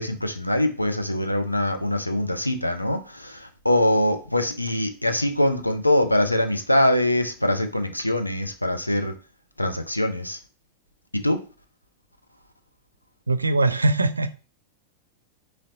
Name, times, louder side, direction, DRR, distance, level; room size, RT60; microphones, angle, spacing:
voice 1, 0.0-9.1 9.6-10.4 11.1-11.4, left 1 dB, 85° left, 0.5 m, -23 dB
voice 2, 13.3-14.4, right 2 dB, 80° right, 0.3 m, -22 dB
3.9 x 3.1 x 2.7 m
figure-of-eight pair, 90°, 0 cm